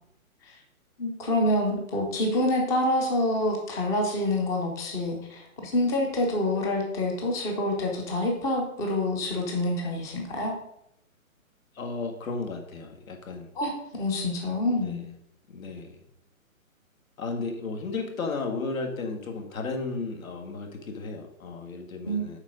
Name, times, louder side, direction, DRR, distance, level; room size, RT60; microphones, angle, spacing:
voice 1, 1.0-10.5 13.5-15.0 22.0-22.2, left 1 dB, 10° left, 1 dB, 0.6 m, -27 dB
voice 2, 11.8-13.5 14.8-15.0 15.5-15.9 17.2-22.4, left 3 dB, 70° left, 2 dB, 1.8 m, -34 dB
7.3 x 5.1 x 5.0 m, 0.78 s
hypercardioid pair, 145°, 42 cm